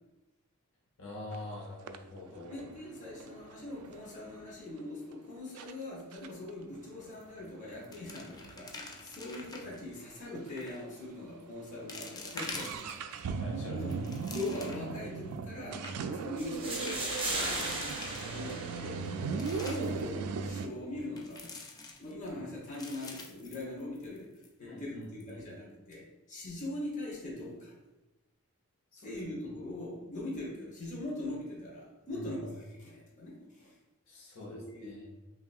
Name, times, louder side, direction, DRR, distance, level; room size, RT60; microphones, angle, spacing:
voice 1, 1.0-2.7 12.3-13.0 13.4-13.9 18.7-18.9 24.6-25.4 28.9-29.1 32.0-32.3 34.1-35.1, left 1 dB, 60° left, -3 dB, 0.9 m, -45 dB
sound 1, 1.3-1.4 1.9-4.5 5.1-5.2 5.6-5.7 6.1-9.8 10.1-10.2 10.4-10.5 11.1-11.2 11.5-20.7, right 5 dB, 85° right, 0.3 m, -39 dB
voice 2, 2.5-12.6 13.7-14.0 14.3-21.5 22.0-24.3 24.6-27.7 29.0-33.7 34.5-35.0, left 1 dB, 35° left, -4 dB, 1.0 m, -41 dB
sound 2, 7.1-7.5 7.7-9.8 10.5-10.8 11.4-11.5 11.9-13.2 13.7-15.0 15.4-15.5 15.7-15.9 16.6-18.6 19.0-20.0 21.2-22.3 22.7-24.2 24.4-24.5 25.0-25.3, left 3 dB, 15° left, 0.3 m, -46 dB
sound 3, 16.4-19.4, right 1 dB, 25° right, 0.8 m, -37 dB
5.6 x 2.5 x 2.4 m, 1.0 s
head